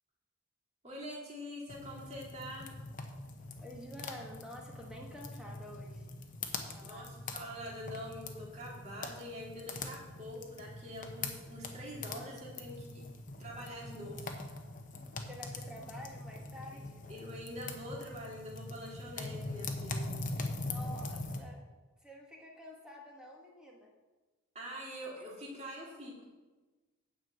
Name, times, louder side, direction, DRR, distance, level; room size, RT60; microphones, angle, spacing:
voice 1, 0.8-2.7 6.8-13.0 13.4-14.3 16.7-16.8 17.1-20.1 24.5-26.3, equal, 30° right, -3 dB, 2.2 m, -45 dB
sound 1, 1.7-21.4, left 3 dB, 35° left, 0.9 m, -43 dB
voice 2, 3.6-6.1 6.7-7.1 15.3-17.0 20.6-21.6 22.0-23.9, equal, 5° right, -1 dB, 1.4 m, -49 dB
9.4 x 5.4 x 7.7 m, 1.2 s
head